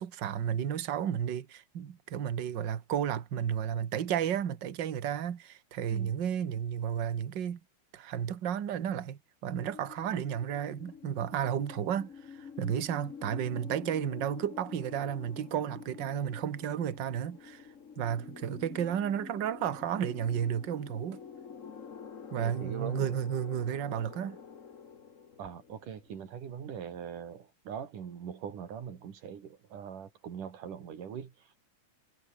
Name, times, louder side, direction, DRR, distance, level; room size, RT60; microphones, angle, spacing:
voice 1, 0.0-7.6 7.9-17.7 18.0-21.2 22.3-24.4, right 9 dB, 45° right, 1.7 m, -32 dB
sound 1, 9.6-26.5, left 6 dB, 45° left, 1.0 m, -48 dB
voice 2, 22.4-23.1 25.4-31.6, right 8 dB, 85° right, 4.4 m, -42 dB
omnidirectional pair, 3.6 m